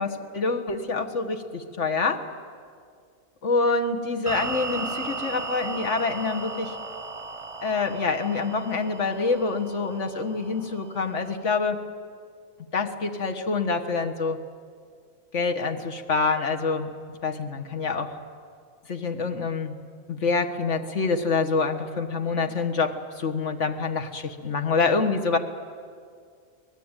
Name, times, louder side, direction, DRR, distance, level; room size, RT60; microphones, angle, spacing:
voice 1, 0.0-2.2 3.4-6.8 7.6-11.8 12.7-14.4 15.3-16.9 17.2-18.2 18.9-19.8 20.1-25.4, left 4 dB, 75° left, 5 dB, 1.8 m, -26 dB
sound 1, 4.3-11.4, right 3 dB, 30° right, 0.7 m, -36 dB
24.0 x 19.0 x 9.0 m, 2.2 s
omnidirectional pair, 1.2 m